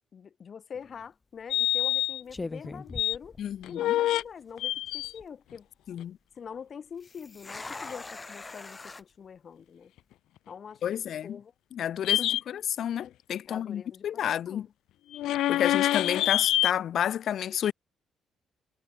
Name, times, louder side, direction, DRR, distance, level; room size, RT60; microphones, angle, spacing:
voice 1, 0.1-3.4 3.7-5.7 6.3-9.9 10.5-11.5 12.2-12.3 13.5-14.7, left 7 dB, 50° left, 5.1 m, -44 dB
sound 1, 0.7-1.0 1.8-2.0 2.3-3.9 4.2-4.3 4.9-5.3 7.0-9.0, left 3 dB, 25° left, 2.7 m, -41 dB
sound 2, 1.5-2.2 2.6-3.2 3.6-4.2 4.6-5.2 12.0-12.4 15.1-16.7, left 14 dB, 85° left, 2.5 m, -26 dB
voice 2, 3.4-4.0 5.9-6.2 10.8-11.4 11.7-14.7 15.5-17.7, left 10 dB, 65° left, 1.0 m, -30 dB
cardioid pair, 90°, 0 cm